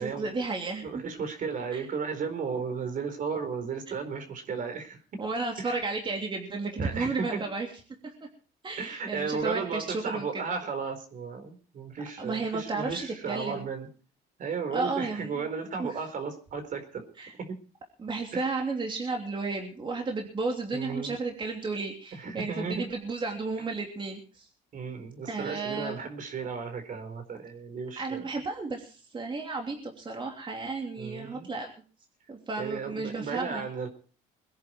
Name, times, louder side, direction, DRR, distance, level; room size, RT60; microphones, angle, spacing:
voice 1, 0.0-1.0 1.7-1.8 5.2-7.7 8.0-8.1 8.6-10.4 12.2-13.6 14.7-15.5 15.8-16.0 17.2-17.3 18.0-24.5 25.3-26.0 28.0-31.7 32.3-33.7, right 3 dB, 30° right, 2 dB, 3.1 m, -33 dB
voice 2, 0.8-5.0 5.6-5.8 6.8-7.3 8.8-13.9 14.4-17.6 18.3-18.5 20.7-21.2 22.1-22.9 24.7-28.3 31.0-31.5 32.6-33.9, right 5 dB, 50° right, 8 dB, 4.3 m, -34 dB
22.0 x 10.5 x 4.6 m, 0.39 s
cardioid pair, 110°, 17 cm